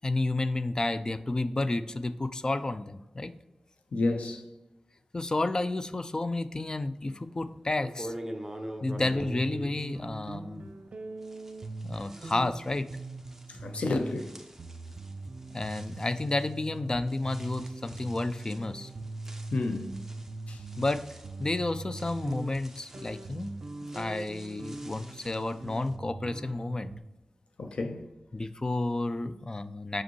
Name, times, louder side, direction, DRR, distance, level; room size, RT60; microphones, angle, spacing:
voice 1, 0.0-3.3 5.1-8.1 8.8-10.7 11.8-12.9 15.5-18.9 20.8-21.1 21.4-23.5 23.9-26.9 28.3-30.0, left 2 dB, 35° left, 0.4 m, -31 dB
voice 2, 3.9-4.4 9.0-9.1 13.5-14.3 19.5-19.9 20.5-20.6 27.6-28.1, left 2 dB, 90° left, 0.7 m, -30 dB
sound 1, 7.2-7.3 7.8-10.9 11.2-25.9, right 1 dB, 15° right, 0.9 m, -47 dB
sound 2, 8.8-9.0 9.2-19.6 19.9-27.0, right 3 dB, 75° right, 0.6 m, -42 dB
5.9 x 5.1 x 3.1 m
cardioid pair, 55°, 2 cm